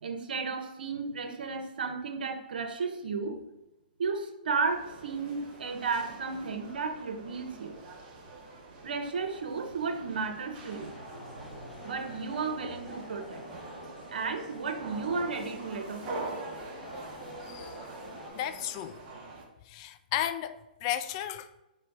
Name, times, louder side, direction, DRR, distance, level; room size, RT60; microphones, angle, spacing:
voice 1, 0.0-3.4 4.0-7.8 8.8-11.0 11.8-13.4 14.1-16.3, right 4 dB, 75° right, 1.0 m, -33 dB
sound 1, 4.6-19.5, right 3 dB, 30° right, 1.3 m, -45 dB
sound 2, 10.7-18.3, left 1 dB, ahead, 1.8 m, -47 dB
voice 2, 17.4-17.8 18.3-19.0 19.6-21.5, left 11 dB, 35° left, 0.4 m, -34 dB
4.4 x 4.4 x 5.2 m
hypercardioid pair, 145°, 5 cm